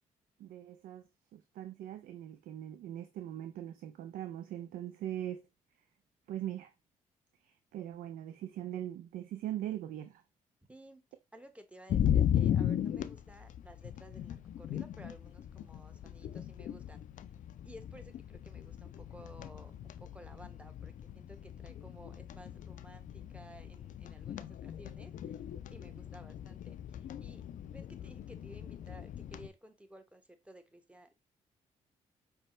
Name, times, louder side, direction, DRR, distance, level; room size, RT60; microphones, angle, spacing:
voice 1, 0.4-5.4 6.3-6.7 7.4-10.2, right 12 dB, 65° right, 0.4 m, -41 dB
voice 2, 10.7-11.0 11.3-17.0 17.6-25.4 25.7-31.1, right 1 dB, 10° right, 1.0 m, -55 dB
sound 1, 11.9-29.5, left 10 dB, 55° left, 0.4 m, -37 dB
5.3 x 2.2 x 3.1 m
hypercardioid pair, 50°, 16 cm